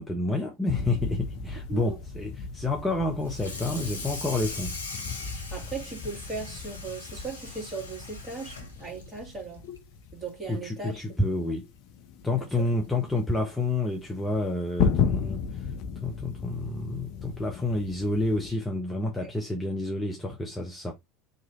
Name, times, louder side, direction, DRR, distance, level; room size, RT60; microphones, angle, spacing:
voice 1, 0.0-4.8 10.5-11.7 12.2-15.7 16.0-20.9, left 2 dB, 10° left, 0.8 m, -29 dB
sound 1, 0.7-18.6, left 6 dB, 50° left, 0.4 m, -35 dB
Water tap faucet / Sink (filling or washing), 3.2-9.9 10.3-10.5 10.9-11.0 11.4-11.5 12.6-12.7 13.2-13.4, left 3 dB, 80° left, 0.7 m, -41 dB
voice 2, 5.5-9.7 10.1-11.0 12.4-12.7 19.2-19.3, right 4 dB, 20° right, 1.9 m, -38 dB
3.1 x 2.7 x 3.6 m
figure-of-eight pair, 70°, 0 cm